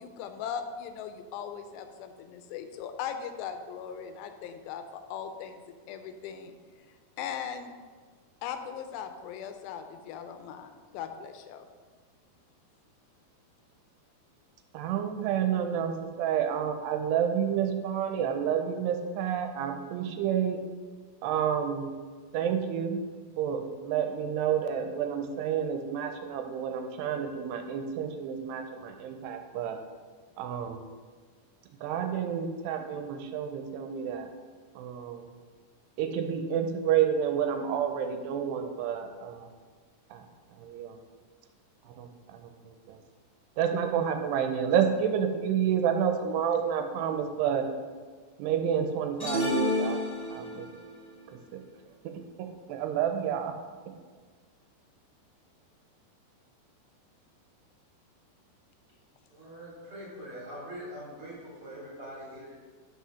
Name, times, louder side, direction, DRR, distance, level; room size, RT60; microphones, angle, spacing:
voice 1, 0.0-5.6 5.9-6.5 7.2-7.7 8.4-11.7, left 8 dB, 85° left, 8 dB, 2.7 m, -39 dB
voice 2, 14.7-20.6 21.2-21.9 22.3-23.0 23.4-29.8 30.4-30.8 31.8-34.3 34.8-35.3 36.0-39.5 40.1-40.2 40.6-41.0 42.0-42.5 42.9-43.0 43.6-47.7 48.4-50.0 50.3-50.7 51.5-51.6 52.0-52.1 52.7-53.5, right 8 dB, 85° right, 6 dB, 2.7 m, -29 dB
sound 1, 49.2-50.7, left 1 dB, 15° left, 0.7 m, -29 dB
voice 3, 59.4-62.6, equal, 35° right, -6 dB, 3.0 m, -43 dB
6.2 x 5.6 x 6.2 m, 1.5 s
omnidirectional pair, 4.9 m